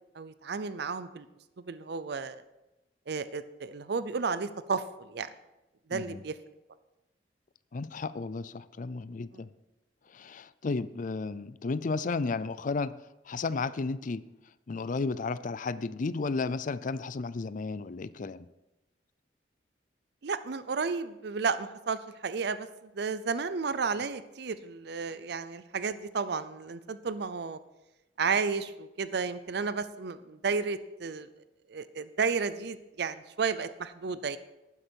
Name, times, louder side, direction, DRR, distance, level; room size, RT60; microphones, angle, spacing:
voice 1, 0.1-1.3 1.7-2.4 3.1-5.3 5.9-6.3 9.3-9.4 20.2-27.6 28.2-31.3 31.7-34.4, right 5 dB, 65° right, 14 dB, 0.6 m, -32 dB
voice 2, 7.7-9.5 10.1-12.9 13.3-14.2 14.7-18.5, left 4 dB, 45° left, 16 dB, 0.5 m, -33 dB
12.0 x 9.8 x 4.5 m, 0.98 s
head